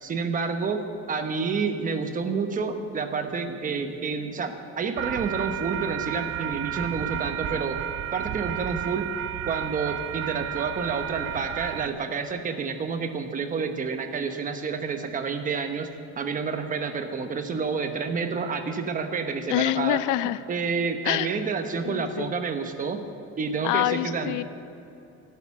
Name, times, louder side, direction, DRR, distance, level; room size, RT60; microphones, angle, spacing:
voice 1, 0.0-7.8 8.1-9.1 9.5-15.9 16.2-20.0 20.5-23.0 23.4-24.4, right 5 dB, 25° right, 6 dB, 1.0 m, -29 dB
sound 1, 5.0-11.9, right 11 dB, 55° right, 0.5 m, -32 dB
voice 2, 19.5-20.4 21.0-21.4 21.8-22.3 23.6-24.4, left 14 dB, 90° left, 15 dB, 0.6 m, -26 dB
13.0 x 11.5 x 7.4 m, 2.7 s
cardioid pair, 175°, 30 cm